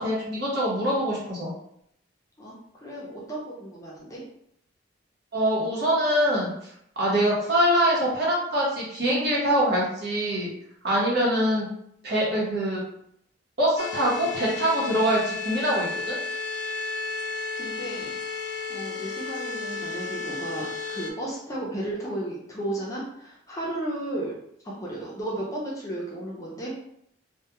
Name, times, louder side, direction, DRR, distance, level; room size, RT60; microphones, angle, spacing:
voice 1, 0.0-1.5 5.3-6.5 7.0-10.5 10.8-11.7 12.0-12.8 13.6-16.2, equal, 55° right, -5 dB, 0.9 m, -24 dB
voice 2, 2.4-4.2 17.6-18.1 18.7-24.4 24.6-26.7, right 1 dB, 15° left, -5 dB, 0.5 m, -34 dB
sound 1, 13.8-21.1, left 4 dB, 70° left, 0.3 m, -33 dB
2.3 x 2.3 x 2.9 m, 0.73 s
head